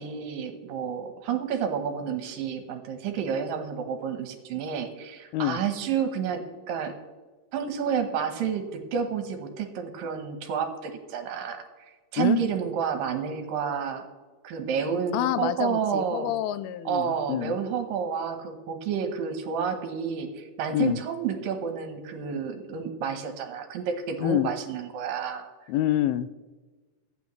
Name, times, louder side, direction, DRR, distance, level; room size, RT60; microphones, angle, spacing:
voice 1, 0.0-6.9 7.5-14.1 14.4-16.3 16.9-25.5, right 7 dB, 70° right, 6 dB, 2.6 m, -30 dB
voice 2, 15.1-17.6 20.7-21.0 24.2-24.5 25.7-26.3, left 13 dB, 85° left, 14 dB, 2.4 m, -27 dB
23.5 x 8.6 x 3.1 m, 1.3 s
omnidirectional pair, 4.4 m